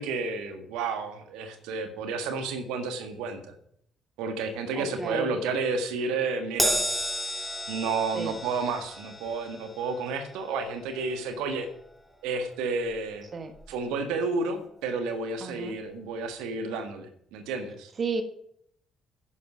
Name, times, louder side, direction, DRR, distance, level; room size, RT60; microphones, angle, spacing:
voice 1, 0.0-3.6 4.2-6.8 7.7-11.7 12.2-13.3 13.7-17.9, right 4 dB, 70° right, 7 dB, 1.6 m, -31 dB
voice 2, 4.7-5.3 8.1-8.3 13.3-13.5 15.4-15.8 18.0-18.2, right 4 dB, 40° right, 8 dB, 1.4 m, -32 dB
Crash cymbal, 6.6-13.2 13.5-13.8 14.8-14.9, equal, 5° right, 3.2 m, -34 dB
10.5 x 10.0 x 6.2 m, 0.69 s
figure-of-eight pair, 45°, 0 cm